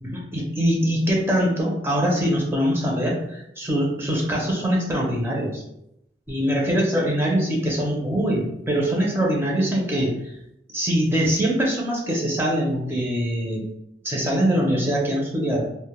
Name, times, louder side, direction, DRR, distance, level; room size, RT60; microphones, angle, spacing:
voice 1, 0.0-5.6 6.3-10.3 10.7-13.7 14.0-15.6, equal, 15° right, -2 dB, 0.4 m, -23 dB
2.1 x 2.0 x 2.9 m, 0.79 s
head